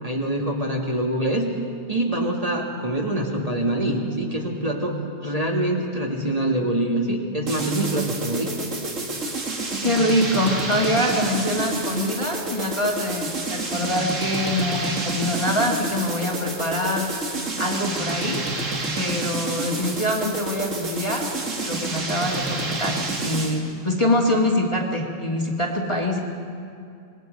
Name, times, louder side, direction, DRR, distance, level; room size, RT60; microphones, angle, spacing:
voice 1, 0.0-1.5 1.9-8.5, right 1 dB, 30° right, -1 dB, 2.0 m, -25 dB
sound 1, 7.5-23.7, right 2 dB, 70° right, 2.3 m, -29 dB
voice 2, 9.8-17.1 17.6-18.4 19.0-21.3 21.6-23.0 23.2-26.2, left 1 dB, 20° left, -1 dB, 1.9 m, -24 dB
25.5 x 20.5 x 5.3 m, 2.4 s
omnidirectional pair, 1.4 m